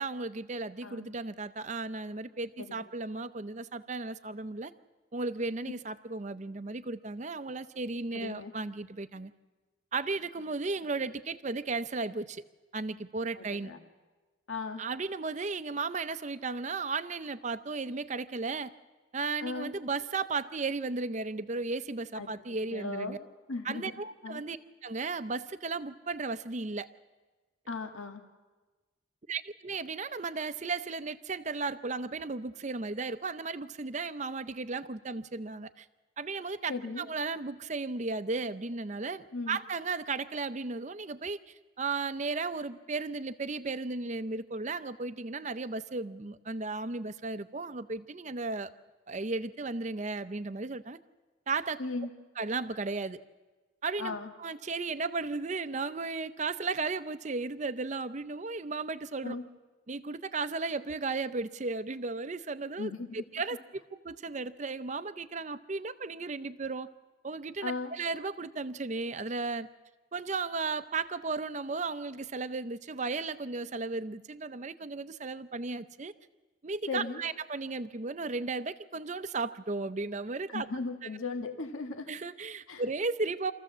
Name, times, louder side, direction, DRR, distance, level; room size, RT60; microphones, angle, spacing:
voice 1, 0.0-4.7 5.1-9.3 9.9-12.4 12.7-13.7 14.8-18.7 19.1-23.2 23.6-26.9 29.3-35.9 36.2-48.7 49.1-51.0 51.5-51.8 52.4-53.2 53.8-59.4 59.9-66.9 67.2-69.7 70.1-76.1 76.6-80.7 81.0-81.1 82.1-83.5, right 3 dB, 35° right, 13 dB, 0.6 m, -35 dB
voice 2, 8.1-8.5 13.3-13.8 14.5-14.8 19.4-19.7 22.2-22.3 22.7-23.2 23.5-23.9 24.2-24.4 27.7-28.2 36.7-37.1 39.3-39.6 51.8-52.1 54.0-54.3 59.2-59.4 62.8-63.2 67.6-67.9 76.9-77.2 80.5-82.1 82.7-82.8, left 3 dB, 85° left, 5 dB, 1.6 m, -37 dB
26.0 x 14.5 x 7.3 m, 1.3 s
head